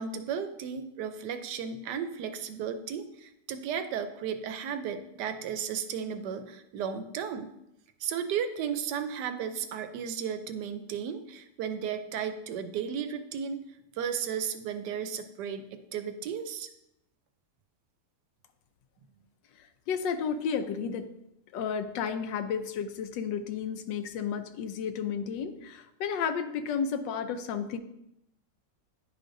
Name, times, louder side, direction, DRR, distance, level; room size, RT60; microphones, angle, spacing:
voice 1, 0.0-7.5 8.0-13.6 14.0-16.7, right 7 dB, 75° right, 9 dB, 1.1 m, -34 dB
voice 2, 19.6-21.1 21.5-27.8, left 6 dB, 85° left, 9 dB, 1.3 m, -32 dB
9.9 x 5.0 x 2.6 m, 0.83 s
omnidirectional pair, 1.9 m